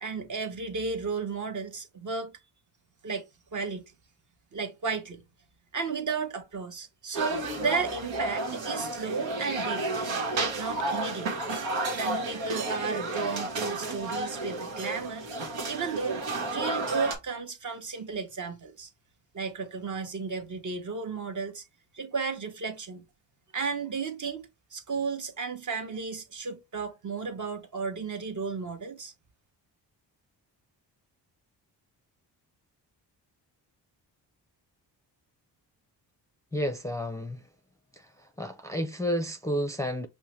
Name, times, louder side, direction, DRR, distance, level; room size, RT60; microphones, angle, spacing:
voice 1, 0.0-2.3 3.0-3.3 3.5-3.9 4.5-5.2 5.7-9.8 10.4-11.3 12.0-15.3 15.6-18.9 19.3-21.6 21.9-23.1 23.5-29.1, right 5 dB, 40° right, 1.0 m, -33 dB
sound 1, 7.1-17.2, right 2 dB, 85° right, 1.2 m, -32 dB
voice 2, 36.5-37.4 38.0-40.1, equal, 5° left, 0.5 m, -31 dB
5.4 x 2.1 x 3.1 m
cardioid pair, 65°, 45 cm